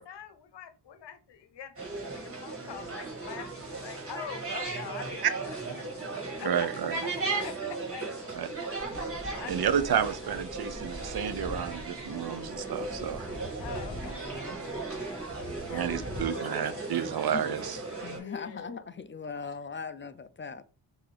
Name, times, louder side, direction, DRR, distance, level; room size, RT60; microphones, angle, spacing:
voice 1, 0.0-5.9 6.4-6.9 7.3-8.6 9.4-9.7 13.6-16.8 18.1-18.9 19.3-19.5, left 8 dB, 65° left, 0.8 m, -45 dB
sound 1, 1.8-18.2, right 3 dB, 30° right, 2.0 m, -37 dB
voice 2, 6.4-6.9 8.4-8.5 9.2-13.3 15.7-17.8, right 8 dB, 55° right, 0.6 m, -30 dB
sound 2, 8.8-16.2, left 1 dB, 10° left, 1.3 m, -44 dB
voice 3, 18.0-20.6, left 5 dB, 25° left, 0.4 m, -39 dB
5.8 x 2.7 x 3.3 m
cardioid pair, 60°, 45 cm